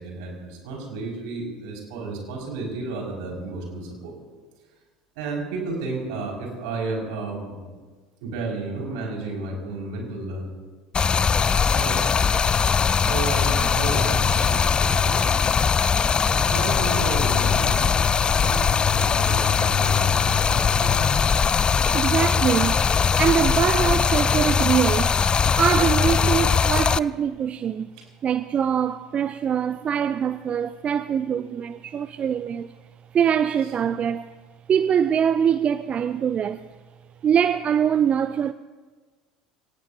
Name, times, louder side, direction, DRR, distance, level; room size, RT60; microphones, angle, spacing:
voice 1, 0.0-4.2 5.2-7.6 8.2-10.5 11.8-12.0 13.1-15.4 16.2-21.3, right 3 dB, 65° right, 5.4 m, -32 dB
Stream, 10.9-27.0, left 6 dB, 25° left, 0.4 m, -20 dB
voice 2, 21.9-22.8 23.2-25.2 25.6-27.9 28.2-32.7 33.1-34.3 34.7-36.7 37.2-38.5, right 8 dB, 35° right, 0.5 m, -23 dB
25.5 x 18.0 x 2.7 m
figure-of-eight pair, 70°, 4 cm